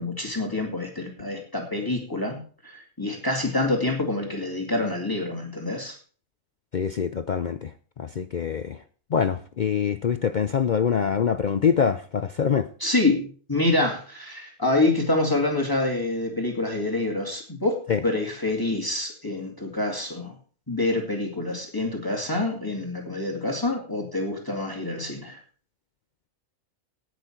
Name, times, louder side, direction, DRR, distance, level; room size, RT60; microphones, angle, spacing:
voice 1, 0.0-6.0 12.8-20.4 20.7-25.4, left 2 dB, 15° left, 1 dB, 2.2 m, -26 dB
voice 2, 6.7-8.8 9.1-12.7 17.9-18.0, left 7 dB, 65° left, 11 dB, 0.4 m, -25 dB
17.5 x 6.3 x 4.5 m, 0.41 s
omnidirectional pair, 1.5 m